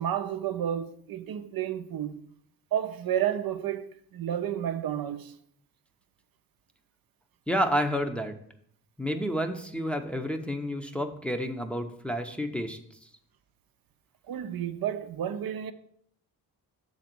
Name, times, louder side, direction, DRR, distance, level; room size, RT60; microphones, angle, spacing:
voice 1, 0.0-2.2 2.7-5.3 14.3-15.7, right 10 dB, 65° right, 0.6 m, -31 dB
voice 2, 7.5-8.3 9.0-12.8, equal, 5° left, 0.7 m, -30 dB
7.1 x 4.0 x 5.9 m
cardioid pair, 85°, 38 cm